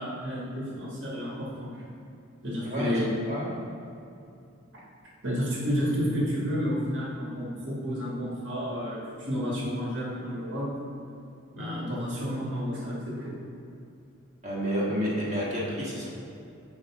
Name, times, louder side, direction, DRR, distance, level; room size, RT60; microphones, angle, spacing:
voice 1, 0.0-1.7 2.4-3.1 5.2-10.7 11.5-13.3, equal, 65° right, -5 dB, 1.3 m, -31 dB
voice 2, 14.4-16.1, equal, 35° right, -7 dB, 1.4 m, -30 dB
7.8 x 4.8 x 3.5 m, 2.7 s
head